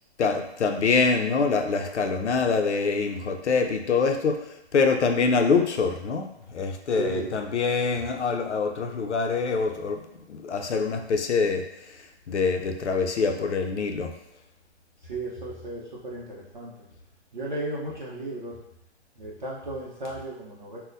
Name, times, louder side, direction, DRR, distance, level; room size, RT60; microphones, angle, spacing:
voice 1, 0.2-4.4 4.7-11.7 12.3-14.1, left 4 dB, 85° left, 5 dB, 0.6 m, -25 dB
voice 2, 6.9-7.3 15.0-16.7 17.3-18.6 19.2-20.8, right 2 dB, 45° right, -4 dB, 0.6 m, -35 dB
4.0 x 2.1 x 2.5 m, 0.84 s
hypercardioid pair, 170°, 34 cm